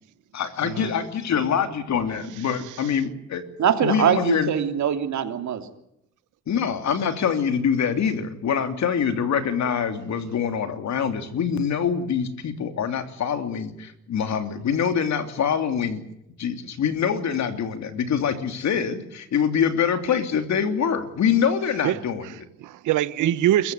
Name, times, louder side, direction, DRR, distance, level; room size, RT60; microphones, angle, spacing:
voice 1, 0.3-3.4 3.8-4.5 6.5-16.0 16.4-22.3, left 7 dB, 65° left, 3.1 m, -24 dB
voice 2, 2.5-2.9 21.8-22.0 22.3-23.7, right 13 dB, 85° right, 1.2 m, -25 dB
voice 3, 3.6-5.7 23.2-23.3, right 8 dB, 65° right, 3.1 m, -23 dB
28.5 x 15.0 x 9.5 m
cardioid pair, 90°, 30 cm